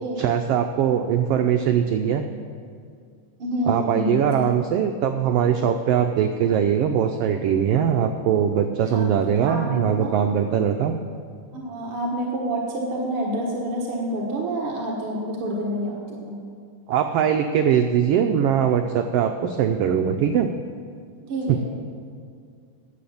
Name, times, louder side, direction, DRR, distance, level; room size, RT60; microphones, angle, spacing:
voice 1, 0.2-2.2 3.7-10.9 16.9-20.5 21.5-21.6, right 8 dB, 85° right, 6 dB, 1.3 m, -21 dB
voice 2, 3.4-4.3 8.9-10.2 11.5-16.4 21.3-21.6, right 1 dB, 55° right, -3 dB, 2.0 m, -28 dB
11.5 x 7.8 x 7.1 m, 2.3 s
omnidirectional pair, 3.3 m